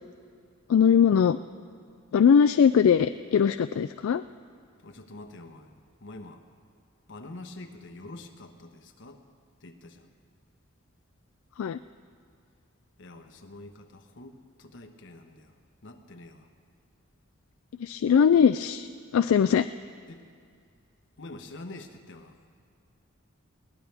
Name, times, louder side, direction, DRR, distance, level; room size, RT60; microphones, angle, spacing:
voice 1, 0.7-1.4 2.1-4.2 11.6-11.8 17.8-18.9 19.1-19.7, left 7 dB, 80° left, 11 dB, 0.3 m, -20 dB
voice 2, 4.8-5.7 6.0-6.4 7.1-9.2 9.6-10.1 13.0-15.5 15.8-16.5 20.1-20.2 21.2-22.4, left 2 dB, 65° left, 6 dB, 1.1 m, -45 dB
21.5 x 17.5 x 3.4 m, 2.2 s
head